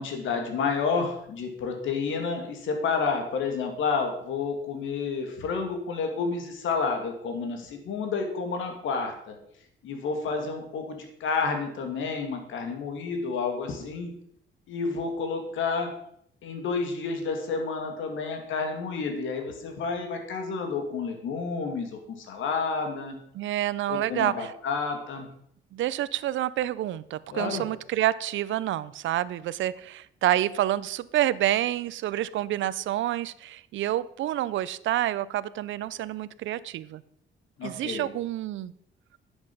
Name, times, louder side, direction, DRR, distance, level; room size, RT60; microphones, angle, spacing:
voice 1, 0.0-9.3 9.8-14.1 14.7-15.9 16.4-23.2 23.9-25.3 27.3-27.6 37.6-38.0, left 4 dB, 80° left, 4 dB, 2.4 m, -30 dB
voice 2, 23.3-24.5 25.7-37.0 37.6-38.7, right 13 dB, 75° right, 18 dB, 0.6 m, -28 dB
10.5 x 8.1 x 5.4 m, 0.70 s
cardioid pair, 90°, 20 cm